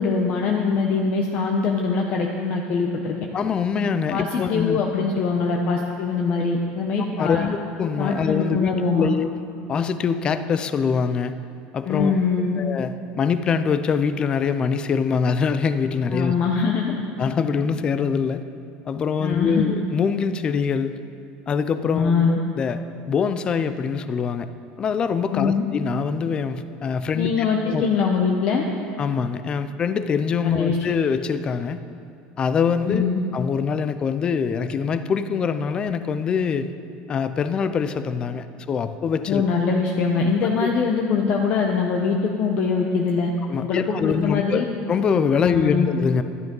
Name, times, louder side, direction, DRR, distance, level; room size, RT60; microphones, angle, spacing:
voice 1, 0.0-3.2 4.1-7.4 8.0-9.1 11.9-12.6 16.1-17.0 19.2-19.7 21.9-22.4 25.3-25.6 27.1-28.7 30.4-30.8 32.8-33.2 39.3-44.6 45.4-45.9, left 5 dB, 45° left, 0 dB, 1.0 m, -23 dB
voice 2, 3.3-4.8 7.2-9.4 9.7-11.3 11.7-12.2 12.6-16.3 17.2-18.4 18.9-21.0 21.5-22.8 23.1-24.5 24.8-27.9 29.0-31.8 32.4-33.1 33.3-36.7 37.1-39.4 40.6-40.7 43.5-46.2, left 6 dB, 25° left, 11 dB, 0.5 m, -24 dB
12.0 x 11.0 x 5.4 m, 2.5 s
cardioid pair, 145°, 4 cm